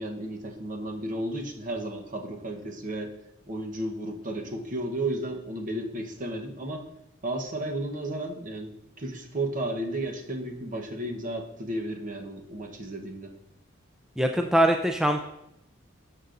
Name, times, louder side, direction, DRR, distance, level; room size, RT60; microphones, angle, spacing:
voice 1, 0.0-3.1 3.5-6.9 7.2-13.3, right 1 dB, 40° right, 3 dB, 1.0 m, -33 dB
voice 2, 14.2-15.2, right 1 dB, 5° right, 3 dB, 0.4 m, -22 dB
12.5 x 6.6 x 2.5 m, 0.82 s
head